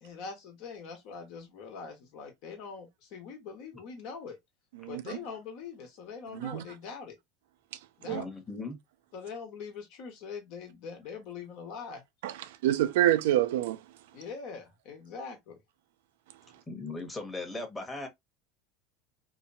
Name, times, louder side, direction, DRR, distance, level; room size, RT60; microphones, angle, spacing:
voice 1, 0.0-4.4 4.9-7.2 8.0-8.3 9.1-12.0 14.1-15.6, left 5 dB, 65° left, 1.1 m, -43 dB
voice 2, 4.8-5.2 6.3-6.6 8.1-8.2 12.2-13.8, right 13 dB, 85° right, 0.3 m, -27 dB
voice 3, 8.1-8.8 16.7-18.1, left 3 dB, 10° left, 1.0 m, -38 dB
2.9 x 2.1 x 2.6 m
supercardioid pair, 115°, 0 cm